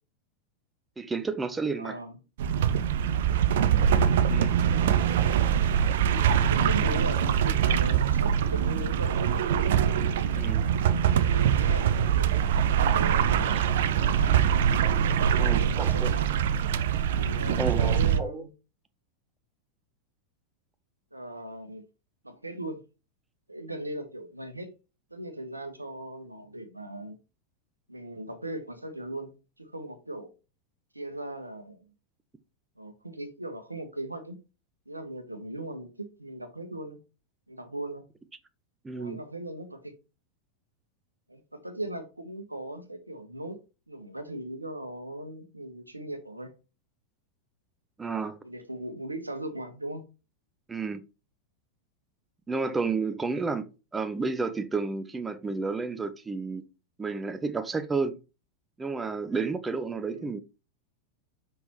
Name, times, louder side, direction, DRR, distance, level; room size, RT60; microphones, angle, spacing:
voice 1, 1.0-2.0 4.3-4.5 10.3-10.6 13.5-13.6 15.4-16.1 17.6-18.4 38.8-39.2 48.0-48.4 50.7-51.0 52.5-56.6 57.0-58.2 58.8-60.4, right 4 dB, 15° right, 0.6 m, -31 dB
voice 2, 1.8-2.2 6.0-9.4 10.4-10.6 11.1-12.3 12.6-14.4 15.0-16.3 17.1-18.5 21.1-21.8 22.2-22.8 23.5-24.7 25.1-27.2 27.9-30.3 30.9-31.9 32.8-34.4 34.9-37.0 37.5-38.1 38.9-39.9 41.3-43.6 43.9-46.5 48.4-50.0 60.1-60.3, right 1 dB, 85° right, 1.1 m, -38 dB
sound 1, 2.4-18.2, right 8 dB, 55° right, 0.6 m, -23 dB
6.0 x 5.3 x 3.0 m
figure-of-eight pair, 90°, 0 cm